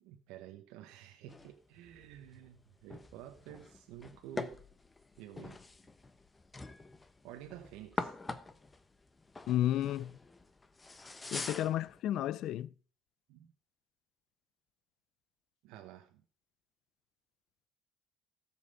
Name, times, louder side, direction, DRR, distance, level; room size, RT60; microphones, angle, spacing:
voice 1, 0.0-4.6 5.2-5.6 7.2-8.1 11.2-11.4 13.3-13.5 15.6-16.2, right 12 dB, 80° right, 1.0 m, -51 dB
sound 1, 1.3-12.0, left 3 dB, 20° left, 1.0 m, -45 dB
voice 2, 9.5-10.2 11.3-12.7, left 12 dB, 65° left, 0.5 m, -32 dB
14.0 x 7.4 x 5.3 m
supercardioid pair, 85°, 0 cm